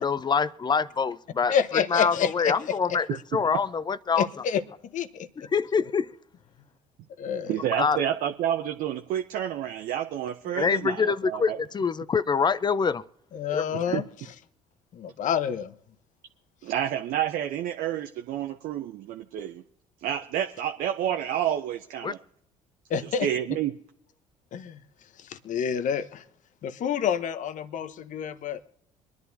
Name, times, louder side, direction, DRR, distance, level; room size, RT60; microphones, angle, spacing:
voice 1, 0.0-3.1 3.3-4.3 5.5-6.2 7.8-8.0 10.5-13.0 13.5-14.0 22.0-22.1, left 5 dB, 25° left, 0.5 m, -25 dB
voice 2, 1.5-2.7 4.1-4.6 4.9-5.5 7.2-7.6 13.3-14.0 14.9-15.7 22.9-23.3 24.5-24.8 25.2-26.2 26.6-28.6, left 8 dB, 50° left, 1.0 m, -28 dB
voice 3, 7.5-11.6 13.7-14.0 16.6-19.6 20.0-22.2 23.2-23.8, right 10 dB, 60° right, 0.8 m, -29 dB
24.0 x 11.0 x 2.8 m
hypercardioid pair, 55°, 16 cm